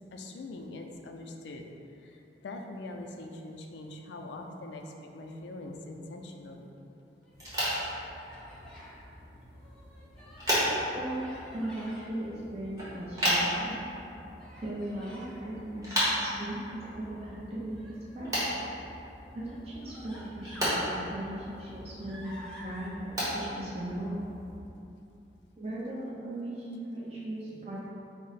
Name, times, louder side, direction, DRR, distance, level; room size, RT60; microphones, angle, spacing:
voice 1, 0.1-1.6 2.0-6.7 15.5-15.7, left 2 dB, 80° left, 3 dB, 0.4 m, -43 dB
Human voice, 7.1-7.8 8.2-9.0 9.5-10.6 11.1-12.1 12.7-13.5 14.4-15.4 17.7-18.6 19.3-19.4 19.8-20.9 21.4-22.9, equal, 5° left, 0.6 m, -51 dB
sound 1, 7.3-24.6, equal, 20° right, 1.1 m, -35 dB
voice 2, 10.9-11.3 11.5-13.8 14.6-18.4 19.3-24.2 25.6-27.9, right 1 dB, 35° right, -7 dB, 0.6 m, -38 dB
4.7 x 2.0 x 4.0 m, 2.9 s
head